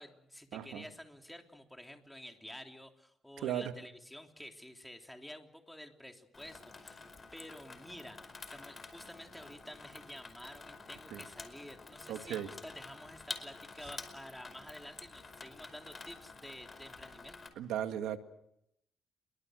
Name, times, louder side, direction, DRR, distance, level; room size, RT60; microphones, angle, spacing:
voice 1, 0.0-7.0 7.3-17.5, left 1 dB, 5° left, 4 dB, 3.4 m, -50 dB
voice 2, 0.5-0.8 3.4-3.7 11.1-11.2 12.1-12.5 17.6-18.2, right 10 dB, 90° right, 7 dB, 2.0 m, -36 dB
Water tap faucet / Sink (filling or washing), 6.3-17.5, left 4 dB, 30° left, 5.0 m, -49 dB
29.5 x 22.5 x 6.6 m, 0.78 s
cardioid pair, 90°, 0 cm